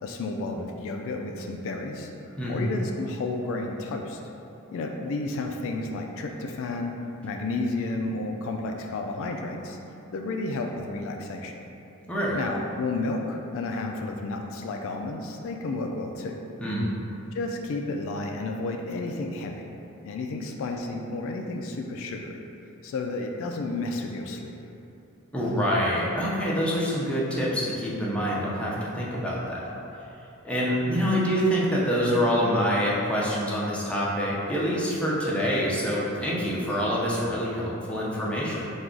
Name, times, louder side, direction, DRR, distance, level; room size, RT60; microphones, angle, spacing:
voice 1, 0.0-2.1 2.5-4.2 4.7-9.8 10.1-11.6 12.3-16.4 17.3-19.7 20.0-22.4 22.8-24.5, left 2 dB, 65° left, 2 dB, 0.3 m, -32 dB
voice 2, 12.1-12.4 16.6-16.9 25.3-29.6 30.4-38.7, equal, 5° left, -6 dB, 0.6 m, -26 dB
4.6 x 2.3 x 3.7 m, 2.9 s
head